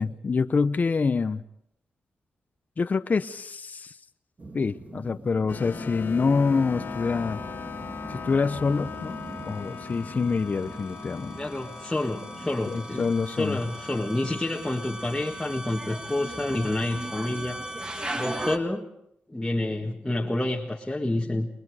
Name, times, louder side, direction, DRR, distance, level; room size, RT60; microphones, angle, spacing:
voice 1, 0.0-1.4 2.8-3.9 4.5-7.4 8.1-9.2 9.4-11.4 12.7-13.6, left 4 dB, 45° left, 9 dB, 0.8 m, -26 dB
sound 1, 4.4-18.2, right 3 dB, 40° right, 2.3 m, -45 dB
sound 2, 5.5-15.5, left 5 dB, 65° left, 2.0 m, -40 dB
sound 3, 9.6-18.6, right 1 dB, 20° right, 1.5 m, -38 dB
voice 2, 11.4-17.6 18.1-18.9 19.3-21.5, left 1 dB, 10° left, -2 dB, 1.8 m, -29 dB
30.0 x 21.0 x 4.9 m, 0.74 s
cardioid pair, 85°, 4 cm